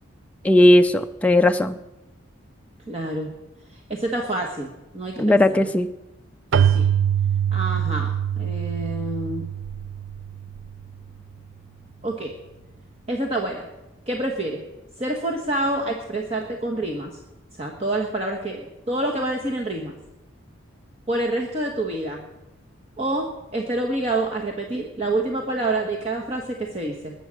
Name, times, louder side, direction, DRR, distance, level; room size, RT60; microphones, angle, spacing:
voice 1, 0.4-1.8 5.2-5.9, left 1 dB, 5° left, 6 dB, 0.4 m, -17 dB
voice 2, 2.9-3.3 3.7-4.7 4.9-5.7 6.5-6.9 7.5-9.5 12.0-12.3 13.1-13.7 14.1-14.6 15.0-17.1 17.6-20.0 21.1-22.2 23.0-27.1, right 2 dB, 30° right, 0 dB, 1.3 m, -27 dB
Keyboard (musical), 6.5-11.0, right 8 dB, 60° right, 0.4 m, -24 dB
20.5 x 7.3 x 6.3 m, 1.0 s
head